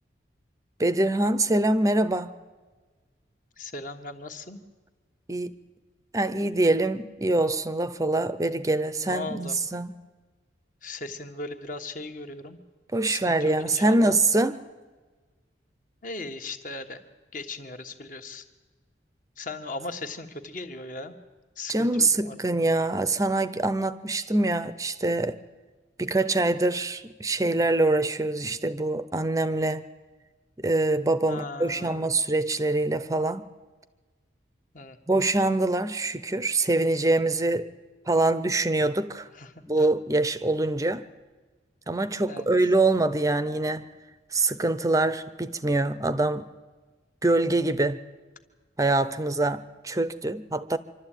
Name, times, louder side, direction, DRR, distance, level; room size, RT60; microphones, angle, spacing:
voice 1, 0.8-2.3 5.3-5.5 6.1-9.9 12.9-14.6 21.7-25.4 26.0-29.9 30.6-33.5 35.1-37.7 38.1-39.3 39.7-41.1 41.9-43.9 44.3-46.5 47.2-48.0 48.8-50.8, right 2 dB, 20° right, 0.6 m, -24 dB
voice 2, 3.6-4.6 9.0-9.5 10.8-12.6 13.0-14.2 16.0-17.0 17.3-18.4 19.4-21.1 21.6-22.3 31.3-32.0 34.7-35.3 39.3-39.9 42.3-42.5, left 2 dB, 45° left, 1.4 m, -38 dB
25.5 x 12.5 x 9.1 m
head